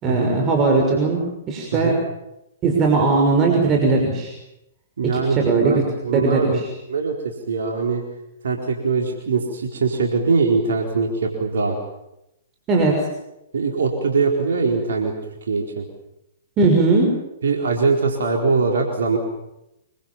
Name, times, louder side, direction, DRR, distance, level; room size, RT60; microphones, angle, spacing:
voice 1, 0.0-1.9 2.6-4.3 5.0-5.8 6.1-6.6 12.7-13.0 16.6-17.1, right 3 dB, 25° right, 1 dB, 6.1 m, -18 dB
voice 2, 5.0-6.6 6.9-7.1 7.5-8.0 8.4-11.8 13.5-15.1 15.5-15.8 17.4-19.2, right 4 dB, 65° right, 1 dB, 4.3 m, -22 dB
26.5 x 24.5 x 7.3 m, 0.88 s
figure-of-eight pair, 115°, 0 cm